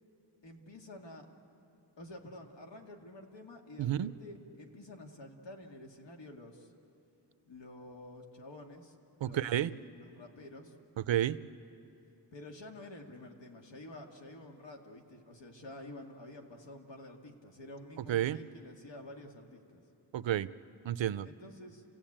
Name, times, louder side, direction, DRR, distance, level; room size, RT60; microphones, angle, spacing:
voice 1, 0.4-1.3 2.0-6.7 7.5-10.7 12.3-19.8 21.2-21.8, left 1 dB, 70° left, 2 dB, 2.3 m, -50 dB
voice 2, 3.8-4.1 9.2-9.7 11.0-11.4 18.1-18.4 20.1-20.5 20.8-21.3, right 11 dB, 80° right, 15 dB, 0.7 m, -30 dB
30.0 x 16.0 x 8.8 m, 2.8 s
wide cardioid pair, 145°, 45 cm